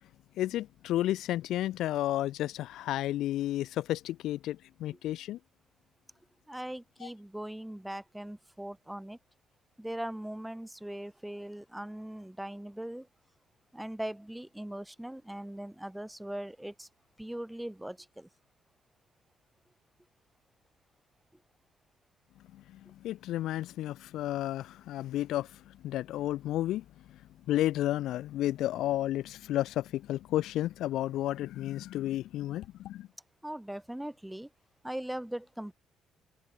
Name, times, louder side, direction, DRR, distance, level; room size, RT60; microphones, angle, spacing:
voice 1, 0.4-5.4 7.0-7.1 23.0-25.5 25.8-26.8 27.5-33.1, left 14 dB, 65° left, 0.3 m, -32 dB
voice 2, 6.5-9.2 9.8-13.1 13.7-16.9 17.2-18.3 33.4-34.5 34.8-35.7, right 1 dB, 5° right, 1.0 m, -40 dB
hypercardioid pair, 50°, 0 cm